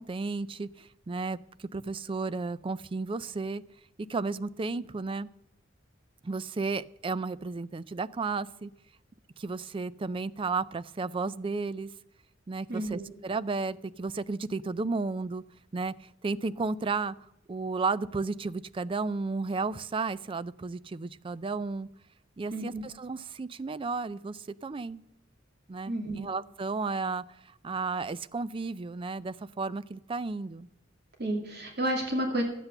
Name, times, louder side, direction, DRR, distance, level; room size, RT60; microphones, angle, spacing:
voice 1, 0.0-3.6 4.1-5.3 6.2-8.7 9.4-11.9 12.5-15.4 15.7-17.1 17.5-21.9 22.4-25.0 25.7-30.7, right 4 dB, 25° right, 16 dB, 0.4 m, -33 dB
voice 2, 12.7-13.1 22.5-22.8 25.9-26.2 31.2-32.4, right 1 dB, 55° right, 2 dB, 2.3 m, -31 dB
12.5 x 8.1 x 6.7 m, 0.83 s
head